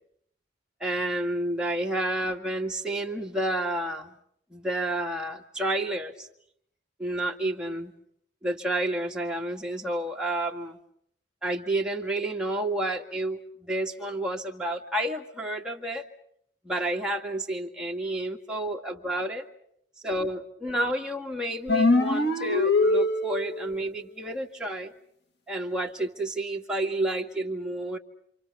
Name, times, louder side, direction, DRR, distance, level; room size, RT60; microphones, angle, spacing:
voice 1, 0.8-4.1 4.5-6.3 7.0-7.9 8.4-10.8 11.4-16.0 16.6-19.5 20.0-24.9 25.5-28.0, right 1 dB, 5° right, 0 dB, 2.1 m, -30 dB
sound 1, 21.7-23.7, left 2 dB, 65° left, 2.6 m, -22 dB
28.0 x 27.0 x 6.8 m, 0.72 s
head